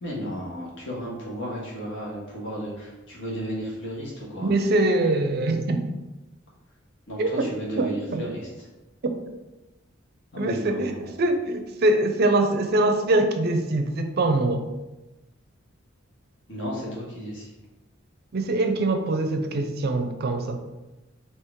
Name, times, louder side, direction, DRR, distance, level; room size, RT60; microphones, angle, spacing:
voice 1, 0.0-4.5 7.1-8.7 10.3-11.1 16.5-17.5, equal, 65° left, -4 dB, 1.4 m, -34 dB
voice 2, 4.4-5.9 7.2-8.2 9.0-9.1 10.4-14.7 18.3-20.6, right 2 dB, 50° right, 6 dB, 0.5 m, -23 dB
4.5 x 2.8 x 3.5 m, 1.0 s
head